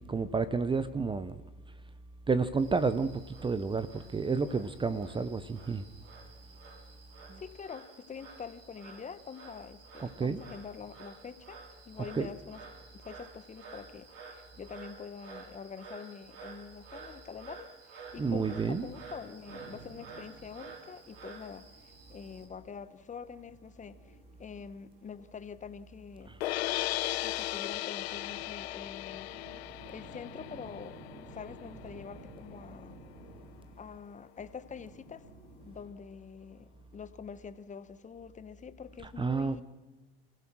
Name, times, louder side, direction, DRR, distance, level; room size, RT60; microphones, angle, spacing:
voice 1, 0.0-1.4 2.3-5.8 7.3-7.4 10.0-10.4 12.1-12.3 18.2-18.9 39.2-39.6, right 4 dB, 15° right, 0.8 m, -30 dB
Frog, 2.6-22.5, right 4 dB, 50° right, 4.7 m, -51 dB
voice 2, 7.4-12.6 12.9-26.4 27.2-29.3 29.9-33.0 33.8-35.2 35.6-39.6, left 6 dB, 25° left, 1.2 m, -46 dB
sound 1, 19.4-35.8, right 2 dB, 70° right, 7.6 m, -55 dB
sound 2, 26.4-32.6, left 16 dB, 85° left, 0.6 m, -37 dB
28.5 x 15.5 x 6.3 m
hypercardioid pair, 100°, 31 cm